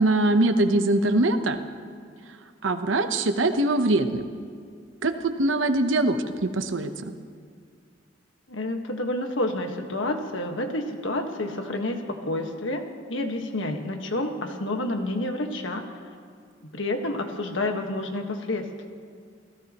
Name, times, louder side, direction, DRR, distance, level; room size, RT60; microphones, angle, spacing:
voice 1, 0.0-1.6 2.6-4.2 5.0-7.1, right 2 dB, 90° right, 8 dB, 1.0 m, -22 dB
voice 2, 8.5-12.8 13.1-15.8 16.6-18.7, left 1 dB, 80° left, 4 dB, 1.5 m, -29 dB
28.0 x 16.5 x 3.0 m, 2.2 s
head